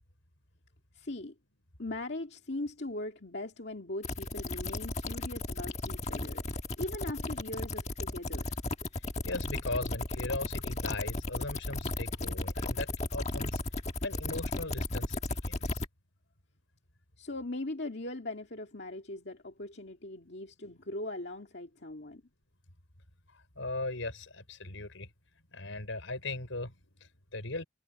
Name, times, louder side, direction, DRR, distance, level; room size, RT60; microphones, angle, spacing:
voice 1, 0.9-1.3 1.8-6.4 6.8-8.5 17.2-22.2, left 2 dB, 60° left, 2.2 m, -40 dB
sound 1, 4.0-15.9, left 2 dB, 35° left, 1.5 m, -35 dB
voice 2, 9.2-13.6 14.0-15.8 23.5-25.1 25.5-27.6, left 2 dB, 80° left, 5.1 m, -38 dB
head